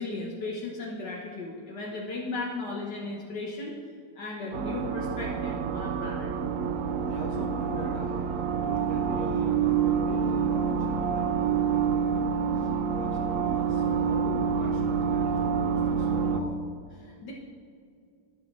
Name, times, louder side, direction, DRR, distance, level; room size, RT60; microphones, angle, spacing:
voice 1, 0.0-3.7 4.2-6.3 17.0-17.3, left 3 dB, 75° left, -3 dB, 2.0 m, -36 dB
sound 1, 4.5-16.4, right 7 dB, 60° right, 0.9 m, -27 dB
voice 2, 7.1-16.7, equal, 60° left, -1 dB, 2.4 m, -41 dB
22.5 x 7.9 x 3.4 m, 2.3 s
omnidirectional pair, 1.8 m